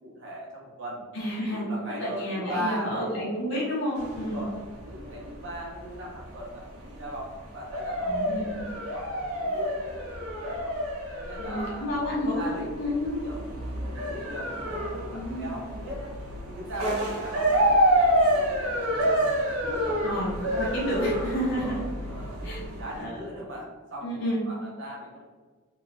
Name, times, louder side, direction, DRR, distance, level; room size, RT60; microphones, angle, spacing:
voice 1, 0.0-1.0 1.5-3.3 4.2-4.5 4.8-10.8 11.2-13.0 13.2-16.1 16.5-20.0 21.6-25.2, equal, 55° right, -4 dB, 0.9 m, -39 dB
voice 2, 1.1-1.6 2.0-4.4 8.0-8.6 11.4-13.1 15.1-15.5 20.0-21.8 22.4-22.6 23.0-23.1 24.0-24.4, equal, 55° left, -5 dB, 0.8 m, -30 dB
sound 1, 4.0-23.0, equal, 80° right, 0.9 m, -29 dB
2.8 x 2.3 x 3.9 m, 1.4 s
head